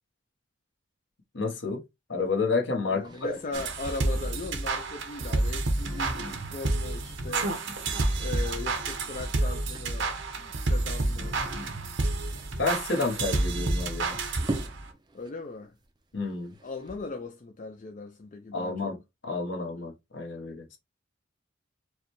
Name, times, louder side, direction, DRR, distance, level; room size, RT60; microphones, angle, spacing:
voice 1, 1.3-1.8 2.1-3.4 12.6-14.2 16.1-16.5 18.5-19.0 19.2-20.8, left 3 dB, 60° left, 1.0 m, -30 dB
voice 2, 2.9-7.5 8.2-11.4 15.1-15.7 16.6-18.9, left 3 dB, 40° left, 0.4 m, -39 dB
sound 1, 3.0-15.3 15.6-17.2, right 2 dB, 20° right, 0.5 m, -43 dB
sound 2, 3.5-14.9, right 2 dB, 60° right, 0.7 m, -29 dB
4.7 x 2.2 x 3.0 m
head